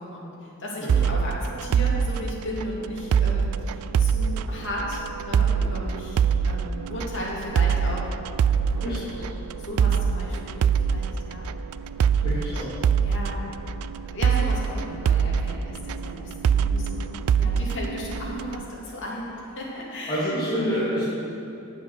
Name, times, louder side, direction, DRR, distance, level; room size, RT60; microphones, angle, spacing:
voice 1, 0.0-8.1 8.7-9.3 9.6-11.5 12.1-12.6 13.0-13.6 14.1-20.7, left 1 dB, 60° left, -4 dB, 2.4 m, -35 dB
sound 1, 0.9-18.6, right 7 dB, 75° right, 0.3 m, -24 dB
voice 2, 12.2-12.7 20.1-21.0, equal, 25° left, -13 dB, 2.9 m, -27 dB
10.0 x 8.1 x 6.4 m, 2.8 s
head